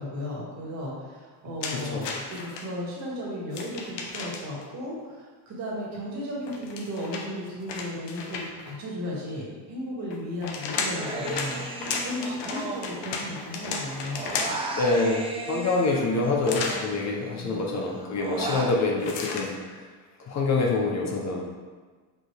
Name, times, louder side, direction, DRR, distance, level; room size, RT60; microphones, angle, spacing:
voice 1, 0.0-11.6 11.9-14.6 17.4-17.6, left 1 dB, 40° right, -5 dB, 1.9 m, -35 dB
sound 1, 1.6-2.6 3.5-4.6 6.4-8.7 10.1-14.7 16.4-16.9 19.0-19.5, left 4 dB, 80° left, 1.0 m, -33 dB
voice 2, 1.7-2.1 14.8-19.5 20.3-21.4, left 3 dB, 40° left, -1 dB, 0.8 m, -26 dB
Human voice, 10.9-13.5 13.8-17.3 17.7-18.8, right 2 dB, 15° right, 0.3 m, -35 dB
5.9 x 4.9 x 3.4 m, 1.4 s
cardioid pair, 165°, 42 cm